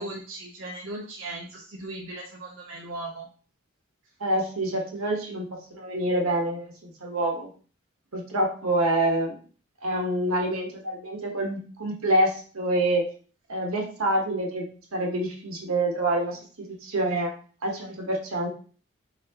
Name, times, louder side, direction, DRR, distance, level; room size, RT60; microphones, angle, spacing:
voice 1, 0.0-3.3, right 2 dB, 65° right, -2 dB, 0.7 m, -37 dB
voice 2, 4.2-7.5 8.1-9.4 9.8-13.1 13.5-17.3 17.6-18.5, right 1 dB, 85° right, 1 dB, 1.1 m, -27 dB
4.0 x 3.7 x 2.8 m, 0.41 s
head